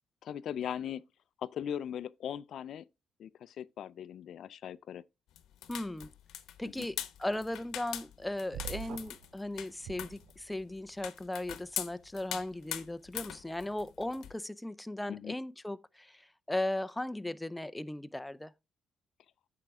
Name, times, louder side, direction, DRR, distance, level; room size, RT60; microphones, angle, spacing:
voice 1, 0.2-1.0 1.4-2.9 3.2-5.0 6.6-6.9 15.1-15.4, left 9 dB, 70° left, 0.4 m, -39 dB
sound 1, 5.4-14.4, left 11 dB, 85° left, 0.9 m, -42 dB
voice 2, 5.7-6.1 6.6-18.5, left 1 dB, 10° left, 0.5 m, -37 dB
sound 2, 8.5-9.3 9.8-10.7, right 10 dB, 80° right, 0.6 m, -44 dB
8.9 x 5.8 x 3.6 m
cardioid pair, 90°, 0 cm